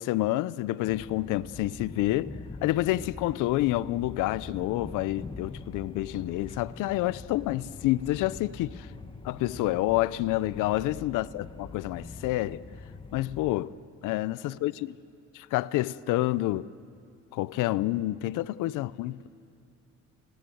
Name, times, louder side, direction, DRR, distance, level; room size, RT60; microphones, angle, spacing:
voice 1, 0.0-2.3 2.6-8.9 9.2-12.6 13.1-13.7 14.0-14.9 15.3-16.7 17.3-19.3, left 16 dB, 85° left, 0.7 m, -28 dB
sound 1, 0.8-13.6, left 3 dB, 15° left, 1.3 m, -44 dB
voice 2, 10.8-11.2 14.1-15.0 18.8-19.3, left 5 dB, 65° left, 4.5 m, -64 dB
30.0 x 25.0 x 7.8 m
cardioid pair, 100°, 31 cm